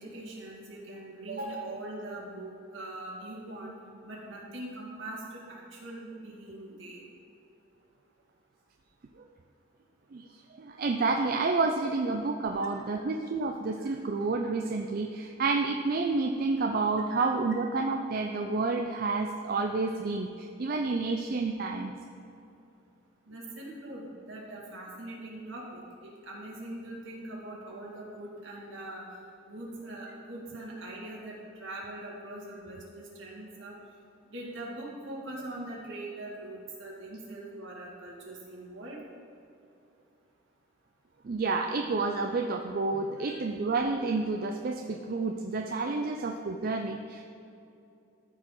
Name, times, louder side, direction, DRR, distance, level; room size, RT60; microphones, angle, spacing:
voice 1, 0.0-3.8 4.0-7.0 13.0-13.1 17.1-17.3 23.3-29.1 29.4-33.8 34.2-39.0 43.2-43.4, right 1 dB, 65° right, -4 dB, 2.1 m, -42 dB
voice 2, 10.6-21.9 41.2-47.2, right 3 dB, 45° right, 3 dB, 0.4 m, -29 dB
14.0 x 4.8 x 3.8 m, 2.8 s
head